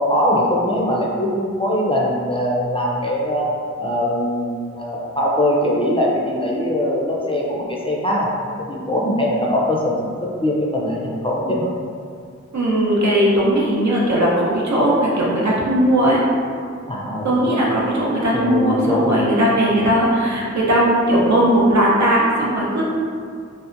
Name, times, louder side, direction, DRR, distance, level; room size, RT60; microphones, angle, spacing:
voice 1, 0.0-3.5 3.8-11.7 16.9-17.6 18.3-19.2, left 1 dB, 20° left, -4 dB, 0.4 m, -21 dB
voice 2, 12.5-16.2 17.2-22.9, right 1 dB, 70° right, -5 dB, 0.6 m, -18 dB
2.7 x 2.1 x 2.5 m, 2.2 s
wide cardioid pair, 40°, 29 cm